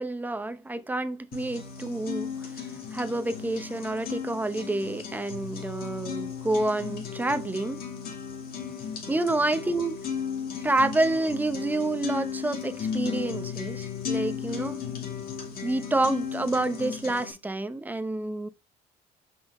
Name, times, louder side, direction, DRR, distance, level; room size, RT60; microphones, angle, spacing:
voice 1, 0.0-2.4 2.9-7.8 9.1-10.0 10.6-14.8 15.6-18.5, right 2 dB, 10° right, 0.7 m, -28 dB
sound 1, 1.3-17.3, left 7 dB, 60° left, 2.3 m, -35 dB
6.0 x 5.3 x 3.1 m
cardioid pair, 110°, 17 cm